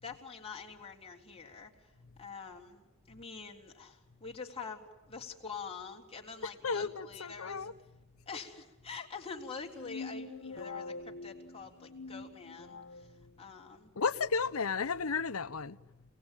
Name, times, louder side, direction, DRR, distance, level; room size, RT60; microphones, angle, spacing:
voice 1, 0.0-1.7 2.2-7.7 8.3-13.1 13.4-13.9, left 5 dB, 30° left, 3.5 m, -45 dB
voice 2, 6.6-7.7 14.0-15.8, left 5 dB, 90° left, 0.9 m, -33 dB
sound 1, 9.6-13.1, left 3 dB, 70° left, 1.8 m, -44 dB
27.0 x 19.5 x 9.2 m
head